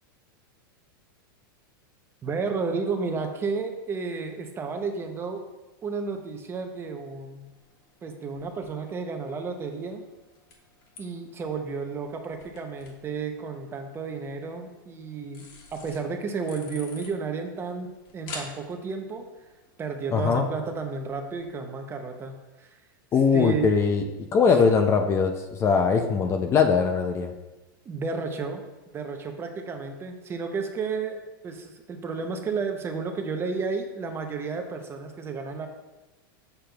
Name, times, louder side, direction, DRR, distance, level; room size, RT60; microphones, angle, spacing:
voice 1, 2.2-5.4 5.8-7.5 8.0-10.0 11.0-19.3 19.8-22.7 23.3-23.8 27.9-28.6 28.9-35.7, right 4 dB, 20° right, 5 dB, 0.7 m, -32 dB
sound 1, 7.4-21.5, left 3 dB, 45° left, 1.6 m, -49 dB
voice 2, 20.1-20.5 23.1-27.3, left 5 dB, 25° left, 5 dB, 0.5 m, -21 dB
7.4 x 6.7 x 2.3 m, 1.1 s
supercardioid pair, 135°, 12 cm